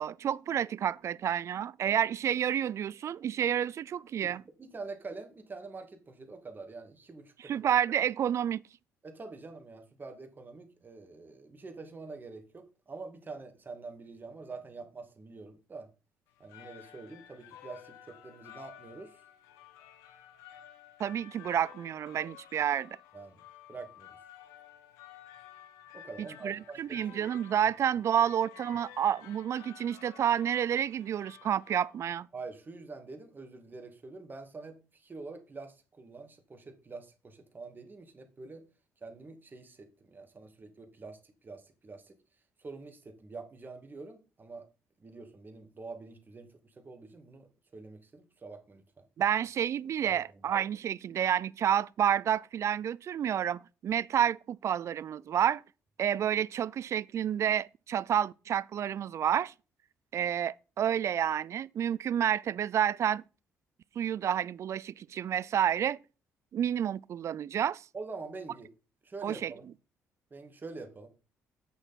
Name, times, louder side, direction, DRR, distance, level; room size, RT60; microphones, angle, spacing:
voice 1, 0.0-4.4 7.4-8.6 21.0-23.0 26.4-32.3 49.2-55.6 56.0-59.5 60.1-63.2 64.0-66.0 66.5-67.8 69.2-69.5, right 9 dB, 55° right, 0.4 m, -29 dB
voice 2, 4.6-7.6 9.0-15.9 16.4-19.2 23.1-23.4 23.7-24.2 25.9-27.3 32.3-38.7 39.0-42.2 42.6-44.7 45.0-48.8 50.0-50.3 67.9-68.7 69.0-69.7 70.3-71.1, right 3 dB, 35° right, 2.0 m, -46 dB
sound 1, 16.3-32.2, left 11 dB, 90° left, 0.9 m, -53 dB
8.0 x 6.3 x 4.1 m
supercardioid pair, 65°, 6 cm